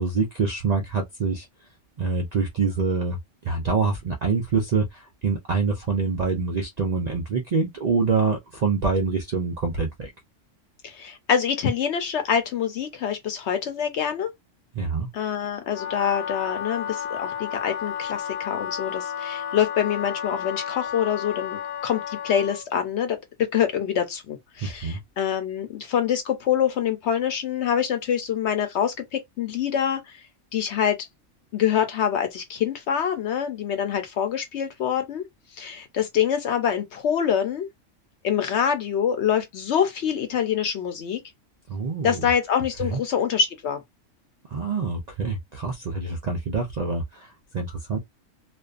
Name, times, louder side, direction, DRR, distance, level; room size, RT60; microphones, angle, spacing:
voice 1, 0.0-1.5 2.0-10.1 14.7-15.1 24.6-25.0 41.7-42.3 42.8-43.0 44.5-48.0, right 4 dB, 85° right, 0.3 m, -26 dB
voice 2, 10.8-14.3 15.1-30.0 30.5-31.0 31.5-35.2 35.6-37.7 38.2-41.2 42.0-43.8, left 8 dB, 65° left, 0.8 m, -25 dB
Wind instrument woodwind instrument, 15.6-22.7, left 8 dB, 90° left, 1.1 m, -32 dB
2.4 x 2.2 x 2.4 m
omnidirectional pair, 1.4 m